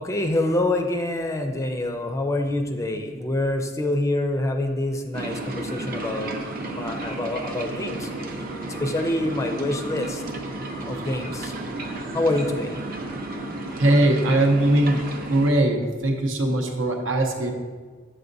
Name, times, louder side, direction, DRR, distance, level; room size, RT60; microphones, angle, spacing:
voice 1, 0.0-6.4 6.7-8.0 8.8-10.2 10.9-11.5 12.1-12.7, left 1 dB, 15° left, 5 dB, 0.4 m, -26 dB
sound 1, 5.1-15.5, right 2 dB, 50° right, 0.6 m, -33 dB
voice 2, 13.8-17.5, right 1 dB, 85° right, 3 dB, 0.8 m, -20 dB
8.0 x 6.2 x 2.6 m, 1.5 s
head